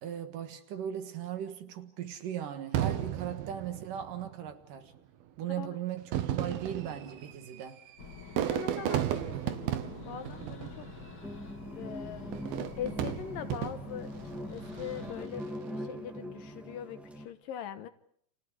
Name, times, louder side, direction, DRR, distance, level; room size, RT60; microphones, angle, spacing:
voice 1, 0.0-4.9 5.4-7.8, right 10 dB, 65° right, 3.0 m, -38 dB
Fireworks, 2.7-4.4 5.2-5.3 6.0-11.3 12.3-14.1 14.7-15.1, right 11 dB, 90° right, 3.2 m, -34 dB
sound 1, 8.0-15.3, left 5 dB, 35° left, 2.4 m, -48 dB
voice 2, 8.2-10.9 11.6-12.3 12.8-14.1 14.5-15.4 15.7-17.9, left 9 dB, 75° left, 2.7 m, -42 dB
sound 2, 11.2-17.3, equal, ahead, 1.0 m, -42 dB
29.5 x 29.0 x 4.9 m
omnidirectional pair, 4.2 m